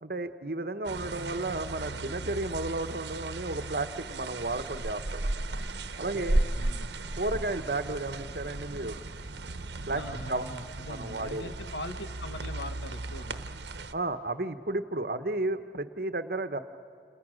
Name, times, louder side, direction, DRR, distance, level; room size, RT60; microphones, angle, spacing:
voice 1, 0.0-5.2 6.0-6.4 7.2-8.9 9.9-10.0 10.3-10.5 10.9-11.5 13.9-16.6, right 2 dB, 55° right, 10 dB, 1.1 m, -33 dB
sound 1, 0.8-13.9, right 2 dB, 75° right, 1.1 m, -35 dB
voice 2, 6.1-6.9 9.9-13.4, left 1 dB, 80° left, 7 dB, 1.8 m, -42 dB
29.5 x 29.5 x 6.4 m, 2.4 s
head